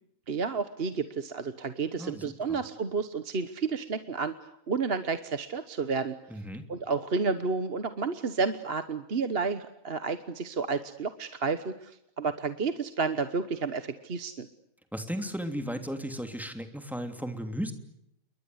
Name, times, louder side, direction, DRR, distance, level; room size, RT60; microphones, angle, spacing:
voice 1, 0.3-4.3 4.7-6.2 6.7-14.5, right 4 dB, 45° right, 11 dB, 1.4 m, -31 dB
voice 2, 2.0-2.6 6.3-6.7 14.9-17.7, equal, ahead, 7 dB, 3.0 m, -35 dB
29.0 x 23.0 x 8.0 m, 0.78 s
omnidirectional pair, 1.5 m